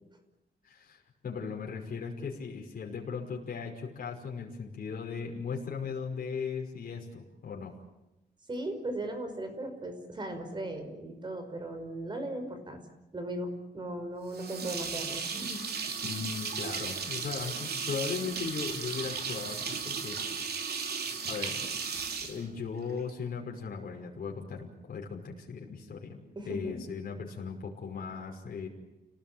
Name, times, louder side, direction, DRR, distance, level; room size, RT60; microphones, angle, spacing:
voice 1, 0.6-7.7 16.0-20.5 21.3-21.7 22.2-28.7, left 5 dB, 55° left, -1 dB, 5.6 m, -38 dB
voice 2, 8.5-12.8 13.1-15.6 26.4-26.8, right 1 dB, 25° right, 7 dB, 5.4 m, -37 dB
sound 1, 14.3-23.1, right 5 dB, 70° right, 3.4 m, -35 dB
30.0 x 19.0 x 9.0 m, 0.94 s
wide cardioid pair, 160°, 17 cm